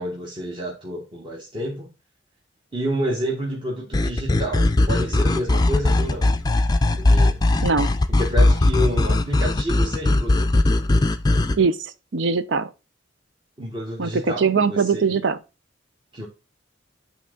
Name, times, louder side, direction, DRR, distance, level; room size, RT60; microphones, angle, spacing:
voice 1, 0.0-1.9 2.7-6.3 7.0-7.4 8.1-10.6 13.6-15.2 16.1-16.3, equal, 25° right, 1.2 m, -29 dB
sound 1, 3.9-11.6, left 2 dB, 20° left, 0.5 m, -19 dB
voice 2, 11.5-12.7 14.0-15.4, right 5 dB, 70° right, 0.6 m, -21 dB
8.5 x 3.6 x 3.7 m
head